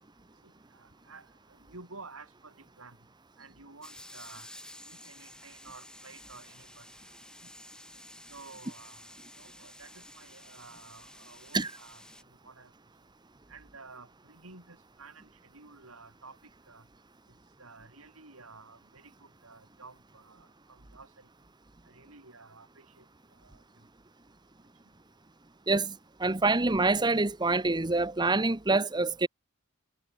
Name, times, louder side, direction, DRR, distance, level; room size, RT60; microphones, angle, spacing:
voice 1, 0.4-3.0 3.4-4.5 4.9-6.9 8.3-12.0 12.4-12.7 13.5-16.4 16.7-16.9 17.6-21.3 21.9-23.1 23.4-23.6, right 3 dB, 90° right, 7.0 m, -52 dB
sound 1, 3.8-12.2, left 1 dB, 5° left, 3.5 m, -51 dB
voice 2, 25.7-29.3, right 3 dB, 20° right, 1.0 m, -26 dB
head